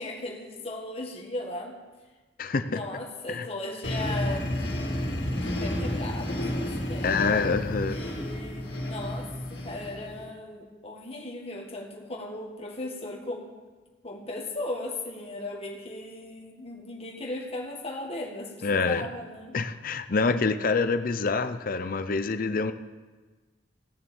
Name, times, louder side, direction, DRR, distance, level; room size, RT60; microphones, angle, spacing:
voice 1, 0.0-1.8 2.7-4.7 5.3-7.3 7.9-13.5 14.0-19.6 20.3-20.4, left 2 dB, 35° left, 0 dB, 1.8 m, -37 dB
voice 2, 2.4-2.8 3.3-3.5 7.0-8.0 18.6-19.1 19.5-22.7, left 4 dB, 50° left, 10 dB, 0.6 m, -26 dB
sound 1, 3.8-10.3, left 1 dB, 75° left, 2.4 m, -31 dB
17.0 x 6.9 x 7.1 m, 1.3 s
head